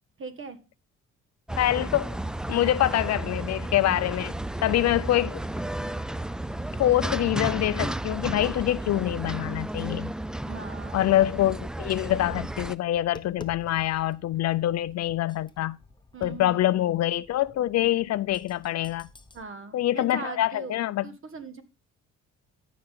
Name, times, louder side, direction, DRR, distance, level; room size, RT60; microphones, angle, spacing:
voice 1, 0.2-0.6 2.4-2.6 4.8-5.0 10.4-11.0 16.1-16.8 19.3-21.6, right 4 dB, 45° right, 1.5 m, -40 dB
sound 1, 1.5-12.7, right 1 dB, 5° right, 0.4 m, -33 dB
voice 2, 1.6-2.2 2.5-4.4 4.6-5.4 6.8-10.1 10.9-15.8 16.2-19.1 19.7-21.0, left 13 dB, 60° left, 0.4 m, -25 dB
Tap, 12.7-19.4, left 3 dB, 15° left, 0.8 m, -50 dB
13.5 x 5.9 x 3.6 m
cardioid pair, 90°, 30 cm